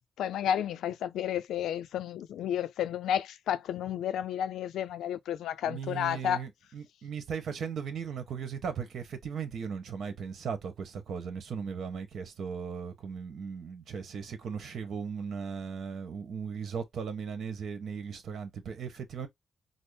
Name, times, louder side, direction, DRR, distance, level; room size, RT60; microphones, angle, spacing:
voice 1, 0.2-6.4, left 10 dB, 85° left, 0.4 m, -31 dB
voice 2, 5.6-19.3, right 6 dB, 70° right, 1.1 m, -37 dB
4.2 x 2.0 x 3.4 m
cardioid pair, 75°, 0 cm